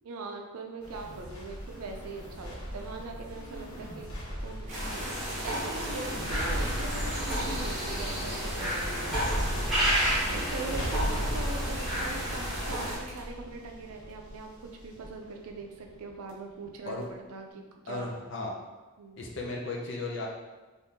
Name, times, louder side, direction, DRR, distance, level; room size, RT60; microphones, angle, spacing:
voice 1, 0.0-4.1 4.4-5.0 5.4-9.5 10.3-18.1 19.0-19.2, right 3 dB, 90° right, 3 dB, 0.5 m, -41 dB
sound 1, 0.8-16.3 16.6-16.7, equal, 85° left, 1.0 m, -36 dB
sound 2, 4.7-13.0, equal, ahead, 1.2 m, -32 dB
sound 3, 4.7-13.2, right 1 dB, 35° right, 0.7 m, -48 dB
voice 2, 17.9-18.5 19.2-20.3, left 2 dB, 55° left, -1 dB, 0.5 m, -35 dB
3.5 x 2.5 x 2.9 m, 1.2 s
head